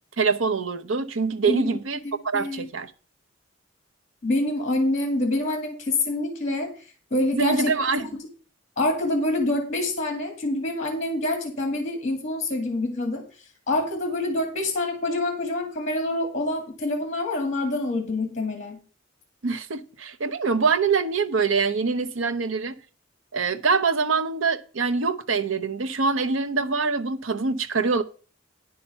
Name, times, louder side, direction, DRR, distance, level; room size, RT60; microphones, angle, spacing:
voice 1, 0.2-2.0 2.2-2.9 7.3-8.1 19.4-22.7 23.3-28.0, right 4 dB, 85° right, 0.8 m, -24 dB
voice 2, 1.5-1.8 2.0-2.7 4.2-6.7 7.1-7.7 8.8-13.2 13.7-18.8, left 2 dB, 40° left, 2.0 m, -26 dB
9.9 x 5.6 x 5.6 m
head